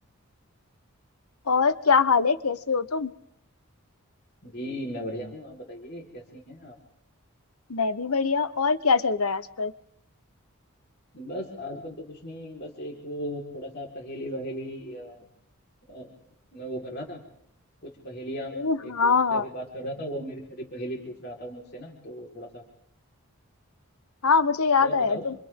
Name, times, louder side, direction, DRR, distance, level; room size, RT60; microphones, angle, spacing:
voice 1, 1.5-3.1 7.7-9.7 18.5-19.5 24.2-25.3, left 5 dB, 90° left, 13 dB, 1.0 m, -23 dB
voice 2, 4.4-6.8 11.1-15.3 15.9-16.1 16.5-17.2 17.8-22.6 24.8-25.2, equal, 50° left, -1 dB, 4.5 m, -37 dB
29.5 x 28.5 x 3.8 m, 0.73 s
head